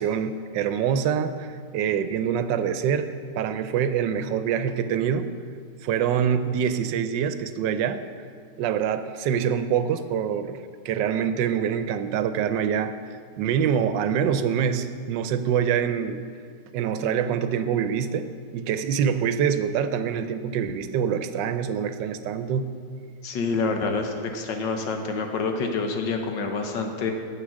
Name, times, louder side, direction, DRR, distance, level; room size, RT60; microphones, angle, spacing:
voice 1, 0.0-3.1 3.4-5.3 5.8-8.0 8.6-12.9 13.4-16.2 16.7-22.7, right 8 dB, 80° right, 10 dB, 1.3 m, -25 dB
voice 2, 23.2-27.1, left 4 dB, 80° left, 4 dB, 1.7 m, -27 dB
9.8 x 7.4 x 6.3 m, 2.2 s
omnidirectional pair, 1.9 m